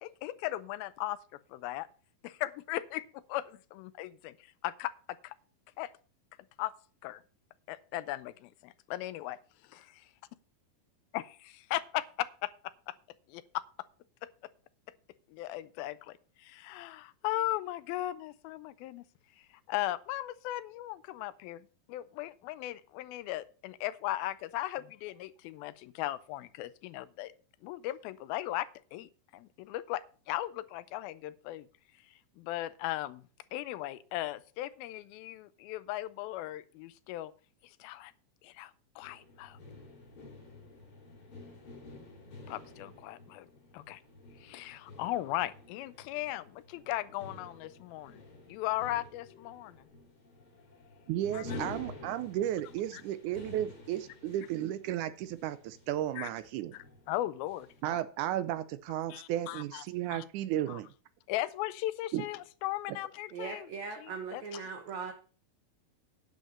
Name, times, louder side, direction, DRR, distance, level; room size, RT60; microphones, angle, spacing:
voice 1, 0.0-1.2 1.5-1.9 2.2-4.3 4.6-4.9 5.2-5.3 5.8-5.9 6.6-6.7 7.0-7.2 7.7-9.4 11.1-12.5 12.9-13.0 13.3-13.6 15.3-19.0 19.7-27.3 27.6-31.7 32.4-33.2 33.5-37.3 37.6-38.1 38.4-39.6 42.5-43.5 43.7-44.0 44.4-48.2 48.5-49.8 51.3-51.4 52.9-53.0 56.2-56.3 56.7-58.0 59.1-60.2 60.7-60.8 61.3-63.7 64.3-64.6, left 15 dB, 85° left, 2.5 m, -37 dB
sound 1, 39.0-57.9, left 2 dB, 35° left, 3.8 m, -50 dB
voice 2, 51.1-56.7 57.8-60.9 62.1-62.3, right 12 dB, 80° right, 1.8 m, -34 dB
voice 3, 63.3-65.1, right 5 dB, 60° right, 2.3 m, -39 dB
9.8 x 6.3 x 6.5 m
omnidirectional pair, 4.3 m